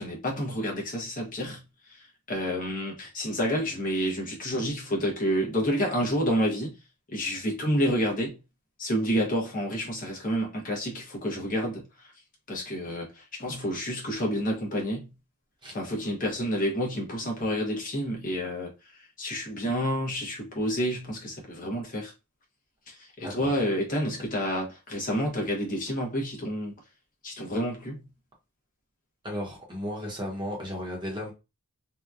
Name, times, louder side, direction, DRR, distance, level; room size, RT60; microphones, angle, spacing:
voice 1, 0.0-1.6 1.9-6.8 7.1-8.4 8.8-12.1 12.5-15.1 15.7-22.1 22.9-26.8 27.2-28.1, equal, 35° left, 0.7 m, -29 dB
voice 2, 23.2-23.6 29.2-31.3, equal, 20° right, 0.8 m, -35 dB
2.8 x 2.2 x 2.3 m
head